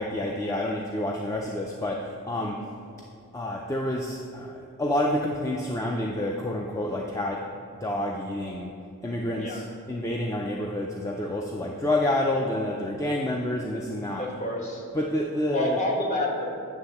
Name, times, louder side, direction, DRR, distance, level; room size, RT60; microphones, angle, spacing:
voice 1, 0.0-2.6 3.3-7.5 7.8-8.7 9.0-9.6 9.9-14.2 14.9-15.8, left 1 dB, 15° left, 0 dB, 0.3 m, -28 dB
voice 2, 14.2-14.8 15.5-16.7, left 1 dB, 35° left, -1 dB, 1.2 m, -29 dB
9.4 x 3.5 x 7.0 m, 2.5 s
head